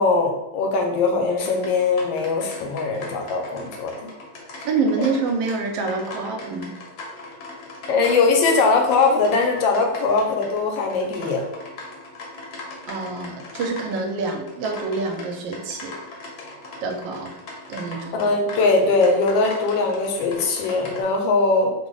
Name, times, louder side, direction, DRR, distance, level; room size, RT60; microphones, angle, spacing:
voice 1, 0.0-4.1 7.9-11.4 18.1-21.7, left 3 dB, 85° left, 3 dB, 1.3 m, -21 dB
sound 1, 1.4-21.0, left 2 dB, 70° left, 1.1 m, -39 dB
voice 2, 4.6-6.7 12.9-16.0 16.8-17.3 17.7-18.3, right 4 dB, 85° right, 3 dB, 1.3 m, -26 dB
3.1 x 2.0 x 3.7 m, 0.92 s
omnidirectional pair, 2.0 m